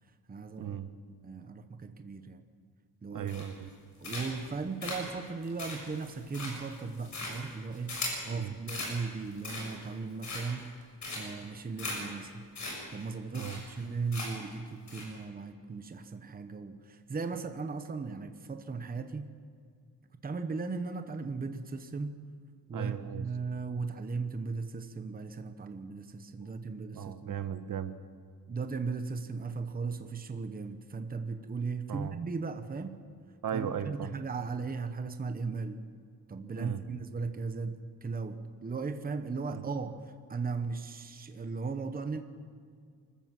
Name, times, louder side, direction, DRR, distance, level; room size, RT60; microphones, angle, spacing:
voice 1, 0.3-0.8 1.1-2.4 3.0-3.3 4.0-8.0 8.2-10.6 11.1-12.5 12.9-19.3 20.2-22.2 22.7-27.4 28.5-33.0 33.5-35.8 36.3-42.2, right 4 dB, 25° right, 8 dB, 1.0 m, -37 dB
voice 2, 3.1-3.7 8.3-8.6 13.3-13.6 22.7-23.3 26.9-28.0 31.9-32.2 33.4-34.1 36.5-36.8 39.5-39.6, right 9 dB, 55° right, 11 dB, 1.1 m, -37 dB
sound 1, 3.3-3.7 4.0-4.5 4.8-8.3 8.7-8.9 9.3-9.8 10.2-10.7 11.0-11.4 11.8-11.9 12.2-12.3 12.5-12.7 13.0-13.1 13.3-13.8 14.1-14.5 14.9-15.0, left 3 dB, 45° left, 6.4 m, -38 dB
25.0 x 14.0 x 7.6 m, 2.2 s
wide cardioid pair, 165°, 38 cm